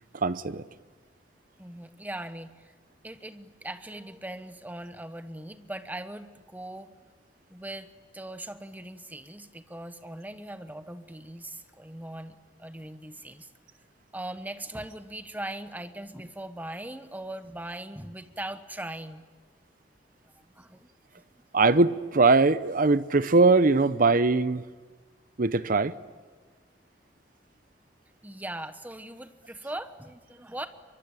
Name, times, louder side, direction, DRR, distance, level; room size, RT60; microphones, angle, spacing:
voice 1, 0.1-0.6 21.5-24.7 25.4-25.9, right 3 dB, 50° right, 0.8 m, -21 dB
voice 2, 1.6-2.7 3.0-6.9 7.5-13.5 14.1-19.2 20.4-20.9 28.2-30.7, right 1 dB, 10° right, 1.2 m, -40 dB
23.5 x 23.5 x 9.1 m
head